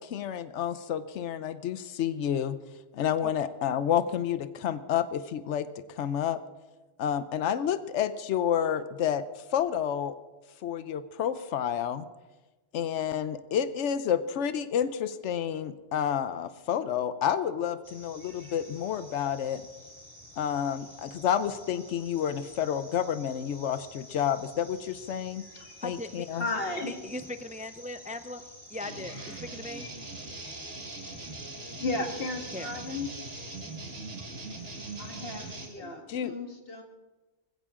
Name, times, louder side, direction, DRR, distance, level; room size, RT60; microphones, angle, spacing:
voice 1, 0.0-2.6 2.9-6.4 7.0-9.2 9.5-10.1 10.6-12.0 12.7-19.6 20.4-25.4 25.8-26.4 36.1-36.4, left 9 dB, 85° left, 13 dB, 1.0 m, -29 dB
sound 1, 17.8-35.7, equal, 30° left, 3.5 m, -50 dB
voice 2, 25.8-26.3 26.9-28.4 28.7-29.9 32.5-32.8, left 2 dB, 10° right, 10 dB, 0.3 m, -39 dB
voice 3, 26.4-27.0 29.8-29.9 31.4-33.1 35.0-36.8, left 2 dB, 55° left, 3 dB, 2.0 m, -35 dB
sound 2, 28.8-35.7, right 3 dB, 85° right, 2.2 m, -41 dB
19.5 x 16.0 x 3.7 m, 1.2 s
omnidirectional pair, 1.2 m